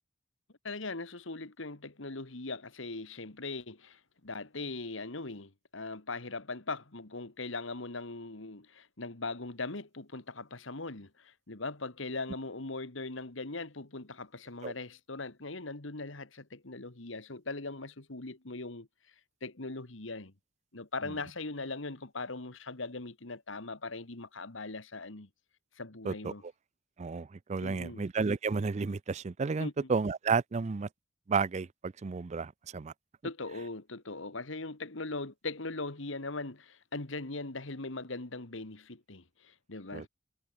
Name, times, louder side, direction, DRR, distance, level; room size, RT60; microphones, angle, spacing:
voice 1, 0.6-18.9 19.4-20.3 20.7-25.3 25.8-26.4 27.6-28.1 29.6-29.9 33.2-40.1, left 3 dB, 75° left, 2.0 m, -40 dB
voice 2, 27.0-30.9 31.3-32.9 39.9-40.0, right 4 dB, 35° right, 0.4 m, -32 dB
head